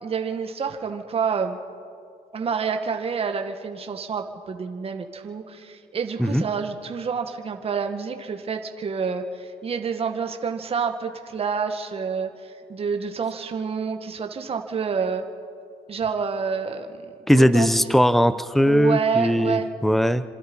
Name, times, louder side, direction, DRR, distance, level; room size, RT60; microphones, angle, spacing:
voice 1, 0.0-1.6 2.3-12.3 12.7-15.2 15.9-17.0 17.3-17.7 18.6-19.7, right 6 dB, 35° right, 5 dB, 1.9 m, -28 dB
voice 2, 17.3-20.2, equal, ahead, 13 dB, 0.9 m, -19 dB
28.0 x 26.5 x 5.6 m, 2.3 s
cardioid pair, 110°, 17 cm